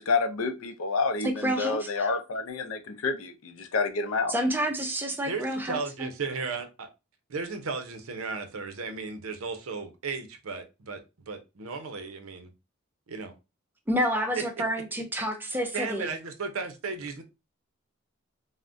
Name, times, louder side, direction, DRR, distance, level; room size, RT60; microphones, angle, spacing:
voice 1, 0.0-4.3, left 4 dB, 75° left, 0.5 m, -29 dB
voice 2, 1.2-2.1 4.3-6.1 13.9-16.1, equal, 10° right, 0.5 m, -29 dB
voice 3, 5.2-6.9 7.3-12.5 13.1-13.3 15.7-17.2, right 4 dB, 85° right, 0.6 m, -35 dB
3.5 x 2.1 x 2.5 m
head